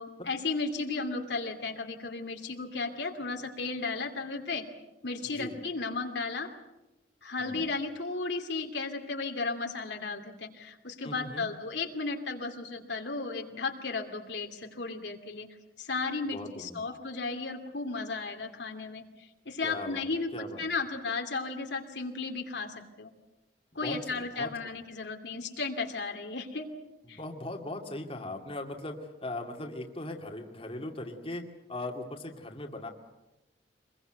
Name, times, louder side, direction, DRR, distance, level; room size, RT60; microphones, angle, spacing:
voice 1, 0.0-4.7 5.0-6.5 7.2-20.3 20.6-23.1 23.7-26.7 27.1-27.2, left 3 dB, 70° left, 4 dB, 2.6 m, -34 dB
voice 2, 5.2-5.6 7.4-7.6 11.0-11.5 16.2-16.8 19.6-20.1 20.3-20.6 23.7-24.5 27.1-31.4 31.7-32.9, left 2 dB, 30° left, 2 dB, 2.4 m, -39 dB
25.0 x 22.0 x 8.0 m, 0.98 s
head